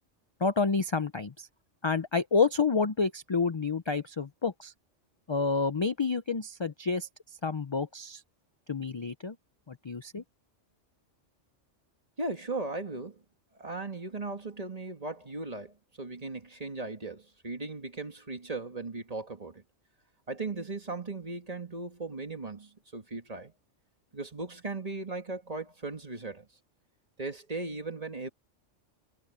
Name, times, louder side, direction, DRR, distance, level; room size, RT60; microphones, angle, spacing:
voice 1, 0.4-1.5 1.8-4.7 5.3-7.1 7.4-8.2 8.7-9.4 9.7-10.2, left 4 dB, 35° left, 0.4 m, -29 dB
voice 2, 12.2-13.2 13.6-19.6 20.3-23.5 24.1-26.5 27.2-28.3, right 3 dB, 30° right, 2.0 m, -37 dB
omnidirectional pair, 1.3 m